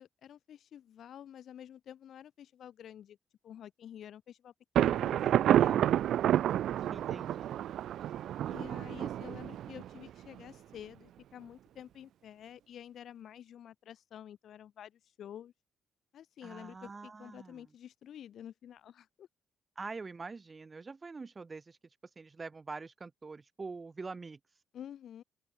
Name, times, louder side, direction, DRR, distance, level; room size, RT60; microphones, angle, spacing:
voice 1, 0.0-3.2 3.4-6.0 8.5-15.5 16.1-19.3 24.7-25.2, left 10 dB, 65° left, 2.4 m, -50 dB
Thunder, 4.7-10.4, right 11 dB, 75° right, 0.6 m, -29 dB
voice 2, 6.9-7.6 16.4-17.6 19.8-21.8 22.2-24.4, right 4 dB, 30° right, 7.6 m, -44 dB
open air
cardioid pair, 90°, 0 cm